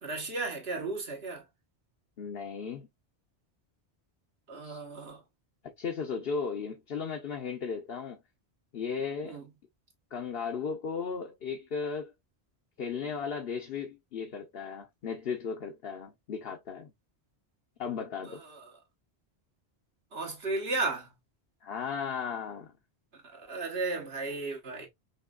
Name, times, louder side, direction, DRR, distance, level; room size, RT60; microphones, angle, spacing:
voice 1, 0.0-1.5 4.5-5.2 9.2-9.5 18.3-18.7 20.1-21.1 23.1-24.9, right 3 dB, 70° right, 1.6 m, -35 dB
voice 2, 2.2-2.9 4.6-4.8 5.8-8.2 8.7-9.4 10.1-12.1 12.8-16.9 17.8-18.4 21.6-22.7, left 6 dB, 65° left, 1.1 m, -35 dB
5.5 x 3.0 x 2.4 m
omnidirectional pair, 1.1 m